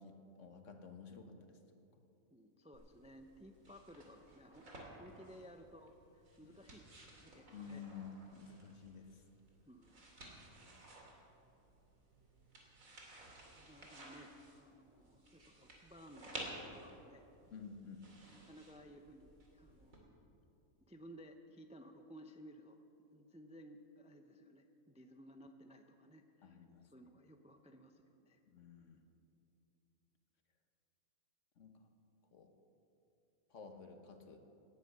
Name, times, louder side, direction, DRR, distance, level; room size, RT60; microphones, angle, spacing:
voice 1, 0.0-2.0 6.4-6.6 7.5-9.2 17.5-18.1 26.4-26.9 28.5-29.0 31.6-31.8 32.3-32.5 33.5-34.4, left 5 dB, 60° left, 5 dB, 1.5 m, -52 dB
voice 2, 2.3-7.8 9.7-10.1 11.1-11.2 13.5-17.2 18.3-20.1 20.9-22.8 23.1-26.6 26.9-28.4, equal, 10° right, 6 dB, 0.4 m, -58 dB
sound 1, 2.7-20.0, right 1 dB, 75° right, 2.9 m, -55 dB
18.0 x 10.5 x 6.6 m, 2.8 s
omnidirectional pair, 1.4 m